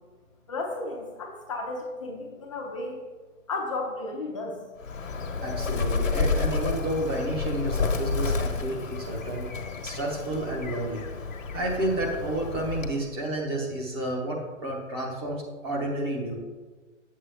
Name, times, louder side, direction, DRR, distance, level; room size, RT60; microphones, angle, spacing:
voice 1, 0.5-3.0 3.5-4.6, left 2 dB, 25° left, -1 dB, 0.6 m, -33 dB
Bird, 4.8-13.1, left 4 dB, 75° left, 1.3 m, -30 dB
voice 2, 5.4-9.5 9.8-11.0 11.5-16.3, right 1 dB, 20° right, -1 dB, 0.9 m, -30 dB
7.8 x 7.4 x 3.5 m, 1.3 s
hypercardioid pair, 165°, 39 cm